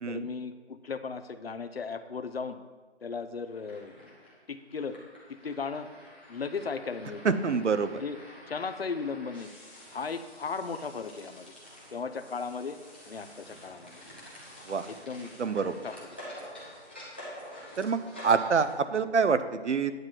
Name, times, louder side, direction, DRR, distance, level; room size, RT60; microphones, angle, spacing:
voice 1, 0.1-2.6 3.0-4.1 4.5-5.0 5.3-5.9 6.3-7.6 7.8-8.2 8.5-9.5 9.9-11.5 11.9-12.8 13.1-14.0 14.8-15.3 15.6-16.0, left 5 dB, 60° left, 11 dB, 0.8 m, -36 dB
sound 1, 3.4-18.7, equal, 10° left, 0.8 m, -48 dB
voice 2, 7.2-8.0 14.7-14.9 15.4-15.7 17.8-19.9, right 5 dB, 90° right, 11 dB, 0.9 m, -26 dB
9.4 x 4.5 x 7.4 m, 1.3 s
hypercardioid pair, 170°, 34 cm